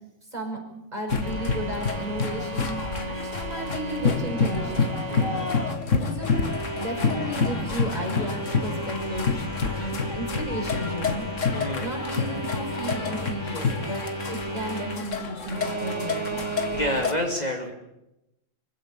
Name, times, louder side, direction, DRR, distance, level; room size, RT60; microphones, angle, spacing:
voice 1, 0.9-5.0 5.9-11.3 11.8-16.5, right 1 dB, 30° right, 1 dB, 6.0 m, -34 dB
sound 1, 1.1-17.1, left 5 dB, 65° left, 2.1 m, -28 dB
sound 2, 1.2-5.8 6.2-15.0 15.4-17.0, right 1 dB, 55° right, 3.6 m, -34 dB
voice 2, 5.1-5.4 11.5-11.9 16.7-17.7, left 1 dB, 30° left, 3 dB, 2.7 m, -29 dB
25.5 x 16.0 x 8.8 m, 0.88 s
omnidirectional pair, 1.4 m